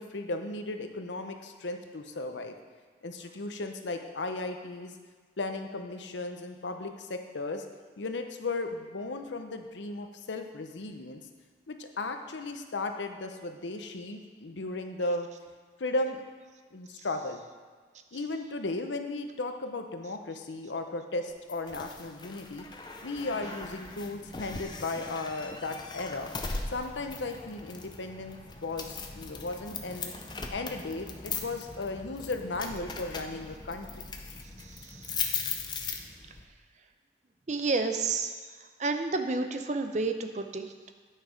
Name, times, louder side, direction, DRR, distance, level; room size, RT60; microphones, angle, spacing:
voice 1, 0.0-2.5 3.0-4.9 5.4-7.6 8.0-11.2 11.7-15.3 15.8-16.2 16.7-17.4 18.1-22.7 23.0-26.3 26.7-30.1 30.5-34.0, left 2 dB, 90° left, 6 dB, 0.8 m, -35 dB
sound 1, 21.5-36.4, left 4 dB, 25° left, 0.6 m, -39 dB
voice 2, 34.8-35.2 37.5-38.3 38.8-40.7, right 3 dB, 40° right, 7 dB, 0.6 m, -30 dB
9.1 x 6.6 x 5.1 m, 1.5 s
head